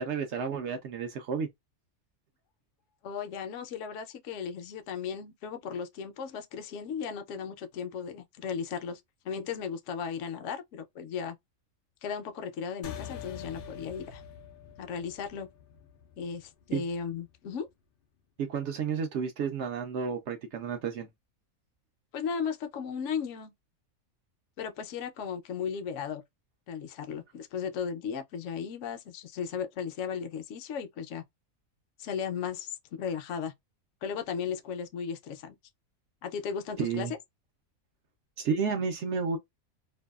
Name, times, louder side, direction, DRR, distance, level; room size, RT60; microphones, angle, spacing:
voice 1, 0.0-1.5 16.7-16.8 18.4-21.1 36.8-37.1 38.4-39.4, right 6 dB, 65° right, 0.7 m, -31 dB
voice 2, 3.0-11.4 12.0-14.2 14.8-15.5 16.2-17.7 22.1-23.5 24.6-26.2 26.7-31.2 32.0-33.5 34.0-35.5 36.2-37.1, left 7 dB, 70° left, 0.8 m, -36 dB
sound 1, 12.8-17.7, left 8 dB, 85° left, 0.4 m, -45 dB
2.6 x 2.2 x 2.3 m
omnidirectional pair, 1.5 m